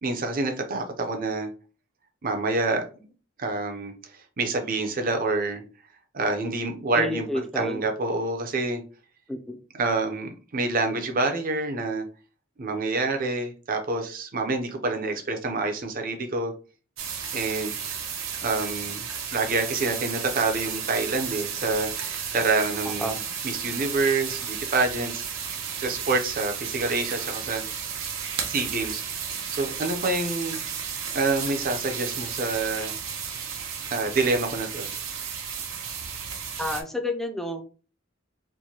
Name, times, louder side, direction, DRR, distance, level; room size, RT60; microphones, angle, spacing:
voice 1, 0.0-1.5 2.2-3.0 3.4-3.9 4.4-5.6 6.1-8.8 9.8-12.1 12.6-16.5 17.3-17.7 18.4-19.0 19.3-23.2 23.4-25.3 25.8-27.6 28.5-29.0 29.5-30.6 31.1-32.9 33.9-34.9, right 3 dB, 45° right, 5 dB, 0.6 m, -27 dB
voice 2, 6.9-7.8 9.3-9.6 23.0-23.2 36.6-37.7, left 1 dB, ahead, 4 dB, 0.4 m, -30 dB
sound 1, 17.0-36.8, right 7 dB, 85° right, 0.7 m, -33 dB
4.6 x 2.2 x 2.8 m, 0.37 s
head